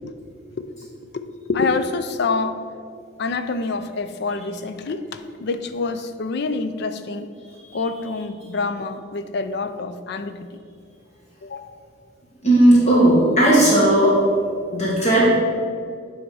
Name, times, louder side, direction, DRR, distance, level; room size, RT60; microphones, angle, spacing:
voice 1, 1.5-2.6 3.2-7.3 7.7-10.4 11.4-11.8, left 3 dB, 55° left, 9 dB, 0.4 m, -26 dB
voice 2, 12.4-14.1 14.7-15.2, right 1 dB, 35° left, -5 dB, 1.5 m, -15 dB
8.9 x 3.6 x 5.4 m, 2.3 s
head